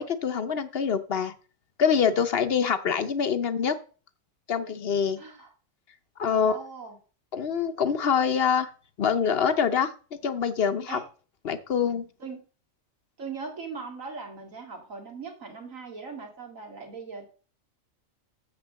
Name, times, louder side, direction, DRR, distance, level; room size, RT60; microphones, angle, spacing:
voice 1, 0.0-1.3 1.8-3.8 4.5-5.2 6.2-6.5 7.3-8.7 9.0-11.0 11.4-12.1, left 7 dB, 50° left, 10 dB, 1.0 m, -25 dB
voice 2, 5.2-5.5 6.3-7.0 10.9-11.0 12.2-12.4 13.2-17.3, right 4 dB, 80° right, 1 dB, 2.7 m, -39 dB
7.0 x 5.8 x 7.4 m, 0.37 s
omnidirectional pair, 1.4 m